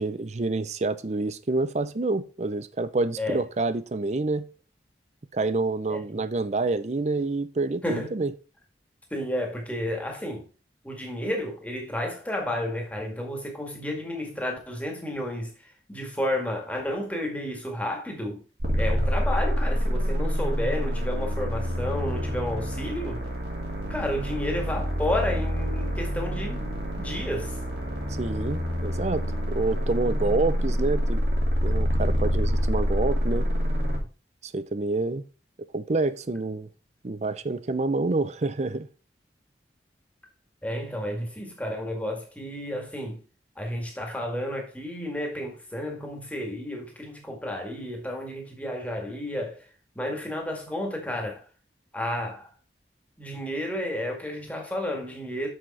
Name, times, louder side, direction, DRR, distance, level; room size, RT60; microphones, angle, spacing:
voice 1, 0.0-4.5 5.3-8.3 28.2-33.5 34.4-35.2 35.7-36.7 37.0-38.9, right 3 dB, 40° right, 0.5 m, -28 dB
voice 2, 9.1-10.4 10.8-15.5 15.9-18.4 18.8-23.2 23.9-26.7 27.0-27.5 40.6-43.2 43.6-49.6 50.0-51.4 51.9-52.5 53.2-55.5, left 1 dB, 10° left, 1.9 m, -31 dB
sound 1, 18.6-34.0, equal, 65° right, 2.6 m, -27 dB
6.8 x 6.5 x 4.2 m
head